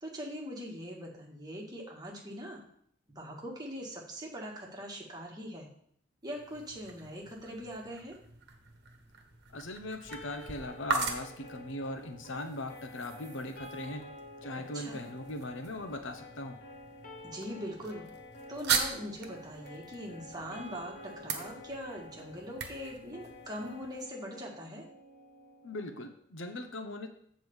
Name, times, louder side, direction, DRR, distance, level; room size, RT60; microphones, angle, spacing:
voice 1, 0.0-2.6 3.1-5.7 6.2-8.2 14.7-15.0 17.2-18.0 18.5-24.9, equal, 20° right, -2 dB, 1.8 m, -42 dB
sound 1, 6.2-24.1, right 5 dB, 60° right, 1.3 m, -40 dB
voice 2, 9.5-14.0 14.4-16.6 25.6-27.1, left 2 dB, 70° left, 7 dB, 0.9 m, -40 dB
sound 2, 10.1-26.1, left 1 dB, 45° left, 1.3 m, -50 dB
8.0 x 4.2 x 7.1 m, 0.66 s
head